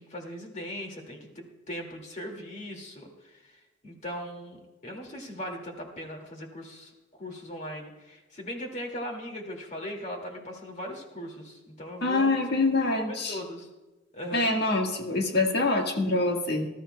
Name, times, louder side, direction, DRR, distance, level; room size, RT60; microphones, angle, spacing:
voice 1, 0.0-12.6 13.0-13.7 14.1-14.5, equal, 40° left, 3 dB, 2.2 m, -39 dB
voice 2, 12.0-13.4 14.3-16.7, left 2 dB, 60° left, 2 dB, 1.6 m, -25 dB
19.5 x 13.0 x 2.2 m, 1.1 s
head